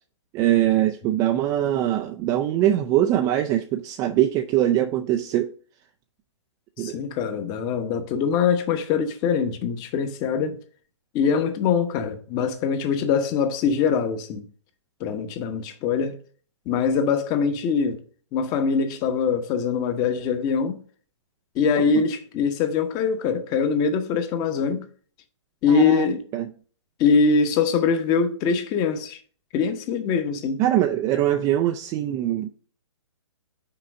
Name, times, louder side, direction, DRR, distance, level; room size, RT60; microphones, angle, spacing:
voice 1, 0.3-5.5 6.8-7.0 25.7-26.1 26.3-26.5 30.6-32.5, right 12 dB, 20° right, 0.4 m, -22 dB
voice 2, 6.8-10.6 11.1-14.4 15.0-16.2 16.7-18.0 18.3-20.8 21.5-24.9 25.6-26.2 27.0-29.2 29.5-30.6, left 5 dB, 25° left, 1.0 m, -23 dB
5.9 x 4.6 x 6.1 m
hypercardioid pair, 135°, 16 cm